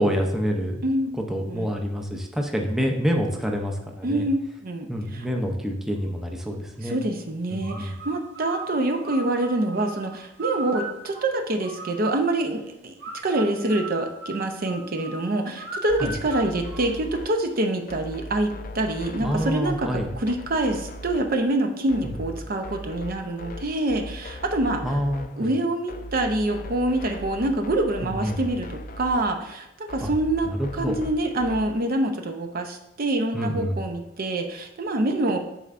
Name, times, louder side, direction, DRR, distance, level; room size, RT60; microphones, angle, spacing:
voice 1, 0.0-0.8 1.3-4.3 4.9-7.0 7.5-7.9 16.0-16.1 19.2-20.1 22.0-22.1 24.8-25.5 28.0-28.4 30.0-30.1 30.4-31.0 33.3-33.8, equal, ahead, 1 dB, 0.6 m, -27 dB
voice 2, 4.0-4.4 4.6-5.3 6.8-12.9 13.2-25.0 25.4-35.4, right 1 dB, 50° right, 5 dB, 0.6 m, -26 dB
sound 1, 7.6-12.3 13.0-17.4, right 2 dB, 65° right, 2.0 m, -38 dB
sound 2, 15.9-31.9, left 1 dB, 45° left, 0.4 m, -39 dB
10.0 x 4.2 x 2.5 m, 0.83 s
head